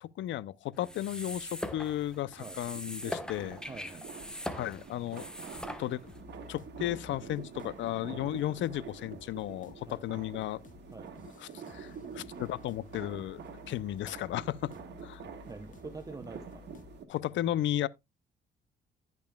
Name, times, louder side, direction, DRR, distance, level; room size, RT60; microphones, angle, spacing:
voice 1, 0.0-3.6 4.6-5.3 5.8-6.0 6.5-10.6 11.2-13.4 13.7-14.7 15.0-15.2 17.1-17.9, left 13 dB, 70° left, 0.5 m, -34 dB
sound 1, 0.8-6.2, left 1 dB, 5° left, 1.1 m, -41 dB
sound 2, 2.3-17.1, right 7 dB, 60° right, 1.5 m, -47 dB
voice 2, 3.7-4.1 8.1-8.3 9.9-10.0 10.9-11.1 15.5-16.6, right 3 dB, 20° right, 0.7 m, -45 dB
sound 3, 6.0-17.0, left 8 dB, 40° left, 0.9 m, -54 dB
15.5 x 5.3 x 2.2 m
cardioid pair, 90°, 20 cm